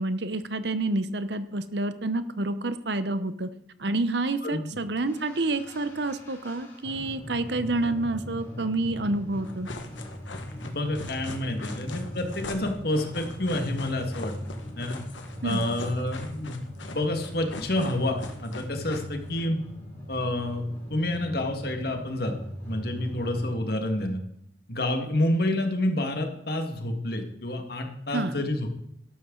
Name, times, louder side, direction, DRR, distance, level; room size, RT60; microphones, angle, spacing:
voice 1, 0.0-3.5 3.8-9.7 15.4-15.7 28.1-28.4, right 2 dB, 65° right, 12 dB, 0.9 m, -28 dB
sound 1, 5.1-23.5, equal, 15° left, 5.6 m, -40 dB
sound 2, 9.4-19.5, left 3 dB, 85° left, 1.6 m, -41 dB
voice 2, 10.6-14.3 14.8-15.0 15.4-16.6 16.9-19.6 20.1-22.3 22.7-24.2 24.7-28.7, left 1 dB, 55° left, 4 dB, 1.9 m, -28 dB
12.5 x 12.0 x 4.0 m, 0.73 s
head